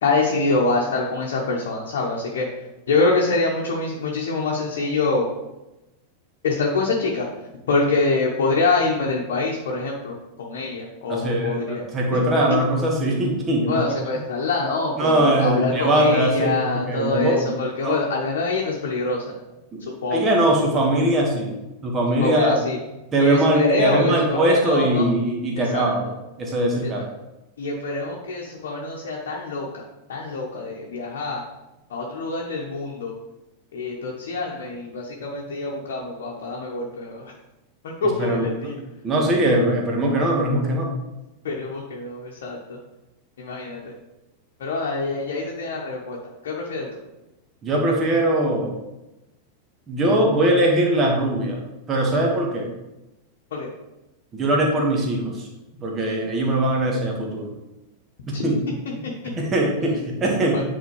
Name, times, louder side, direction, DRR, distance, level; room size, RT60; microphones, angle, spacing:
voice 1, 0.0-2.5 2.9-5.3 6.4-7.3 7.7-11.8 12.1-12.2 13.7-19.3 20.0-20.2 22.2-22.8 23.2-25.1 25.7-25.9 27.6-29.8 30.1-31.4 31.9-33.1 33.7-37.3 37.8-38.7 41.4-42.6 43.4-43.8 44.6-46.2 46.4-46.9 53.5-53.7 58.3-58.4 60.5-60.7, left 3 dB, 60° left, -2 dB, 1.0 m, -25 dB
voice 2, 11.1-13.8 15.0-17.5 17.8-18.0 19.7-19.8 20.1-21.5 21.8-22.6 23.1-26.1 26.4-27.0 38.2-38.7 39.0-40.9 47.6-48.7 49.9-51.6 51.9-52.7 54.3-55.5 55.8-57.5 58.3-58.6 59.2-60.7, right 1 dB, 25° right, -1 dB, 1.6 m, -21 dB
9.1 x 4.2 x 3.2 m, 0.99 s
figure-of-eight pair, 90°, 0 cm